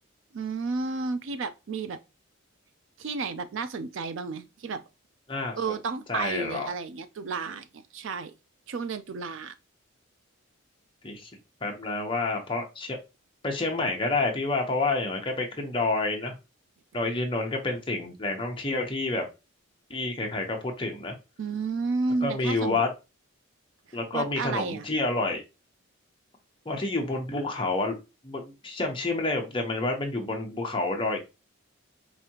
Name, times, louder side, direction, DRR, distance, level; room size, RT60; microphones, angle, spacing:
voice 1, 0.3-2.0 3.0-4.8 5.6-8.3 8.7-9.5 21.4-22.8 23.9-24.9, right 4 dB, 60° right, 0.4 m, -32 dB
voice 2, 5.3-5.8 6.1-6.7 11.0-11.3 11.6-13.0 13.4-16.3 16.9-19.2 19.9-21.1 22.2-22.9 23.9-25.4 26.7-28.0 28.2-31.2, left 2 dB, 25° left, 0.8 m, -29 dB
4.9 x 2.7 x 2.8 m
head